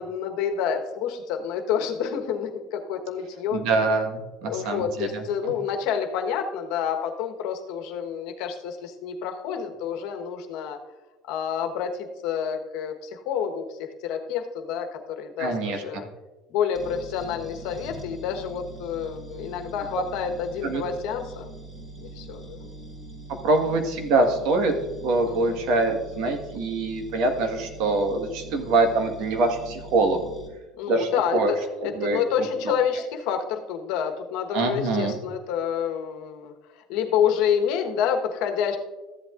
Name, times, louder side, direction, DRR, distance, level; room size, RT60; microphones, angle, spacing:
voice 1, 0.0-3.6 4.5-10.8 11.3-16.1 16.5-21.5 22.0-22.7 25.3-25.6 30.7-31.6 31.8-36.5 36.9-38.8, left 8 dB, 75° left, 5 dB, 1.2 m, -28 dB
voice 2, 3.5-5.5 15.4-16.1 19.9-20.0 20.6-20.8 23.3-24.7 25.0-30.2 30.9-31.5 31.8-32.2 32.6-32.8 34.5-35.2, right 3 dB, 70° right, 5 dB, 1.5 m, -24 dB
sound 1, 16.7-30.5, right 2 dB, 30° right, 3.5 m, -42 dB
14.0 x 8.1 x 2.5 m, 1.1 s
supercardioid pair, 105°, 0 cm